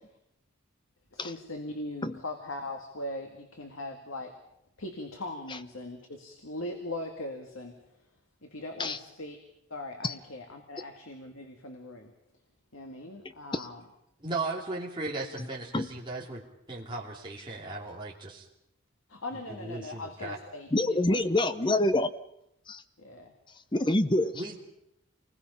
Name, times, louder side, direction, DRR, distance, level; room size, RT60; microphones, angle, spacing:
voice 1, 1.1-4.4 4.8-7.8 8.4-9.4 9.7-12.1 12.7-13.8 19.1-21.3 23.0-23.3 24.2-24.3, left 1 dB, 75° left, 4 dB, 2.1 m, -40 dB
voice 2, 14.2-16.4 16.7-18.4 19.6-20.4 24.3-24.6, right 2 dB, 25° right, -4 dB, 2.9 m, -36 dB
voice 3, 20.7-22.1 22.7-22.8 23.7-24.3, left 1 dB, 20° left, 12 dB, 0.8 m, -26 dB
28.0 x 20.5 x 5.6 m, 0.80 s
head